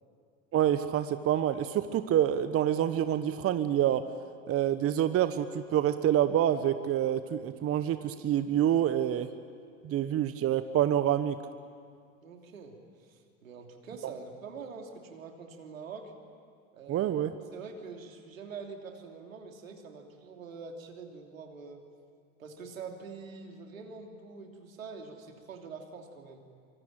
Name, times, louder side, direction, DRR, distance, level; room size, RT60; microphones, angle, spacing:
voice 1, 0.5-4.0 4.5-5.5 5.7-9.3 9.8-11.4 14.0-14.1 16.9-17.4, right 11 dB, 35° right, 11 dB, 1.1 m, -27 dB
voice 2, 12.2-12.8 13.1-16.1 16.7-17.1 17.4-21.8 22.4-26.4, right 5 dB, 80° right, 3 dB, 3.2 m, -45 dB
25.0 x 24.5 x 8.9 m, 2.2 s
hypercardioid pair, 80°, 40 cm